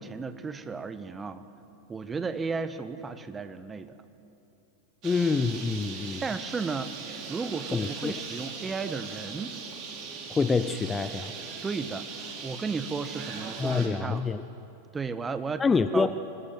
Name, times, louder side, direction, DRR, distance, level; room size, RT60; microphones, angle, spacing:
voice 1, 0.0-1.4 1.9-4.0 6.2-6.9 7.3-9.6 11.6-14.2 14.9-15.6 15.9-16.1, right 4 dB, 15° right, 11 dB, 1.4 m, -34 dB
voice 2, 5.0-6.2 7.7-8.1 10.3-11.3 13.6-14.4 15.6-16.2, left 4 dB, 15° left, 12 dB, 0.8 m, -26 dB
Bird, 5.0-13.9, right 5 dB, 40° right, 4.5 m, -40 dB
25.0 x 20.5 x 9.2 m, 2.8 s
figure-of-eight pair, 90°, 0 cm